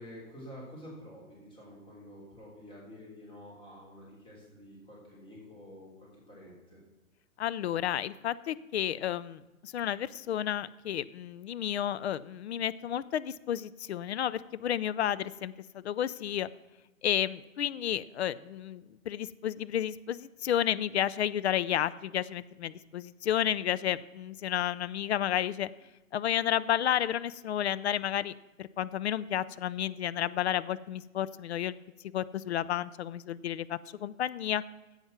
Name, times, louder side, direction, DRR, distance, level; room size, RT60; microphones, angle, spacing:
voice 1, 0.0-6.8, equal, 10° left, -4 dB, 3.4 m, -49 dB
voice 2, 7.4-16.5 17.0-25.7 26.1-31.8 32.0-34.6, left 10 dB, 50° left, 16 dB, 0.5 m, -31 dB
10.5 x 8.1 x 5.9 m, 1.1 s
figure-of-eight pair, 115°, 42 cm